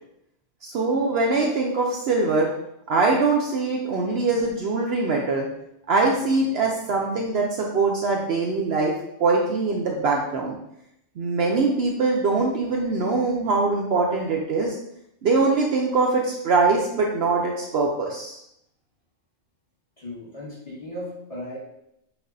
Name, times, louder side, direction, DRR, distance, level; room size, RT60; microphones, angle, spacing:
voice 1, 0.6-2.5 2.9-5.5 5.9-8.9 9.2-10.6 11.2-14.8 15.2-18.4, right 3 dB, 65° right, 0 dB, 0.7 m, -22 dB
voice 2, 20.0-21.6, left 1 dB, 30° left, -7 dB, 1.5 m, -36 dB
5.9 x 2.6 x 2.6 m, 0.78 s
omnidirectional pair, 1.3 m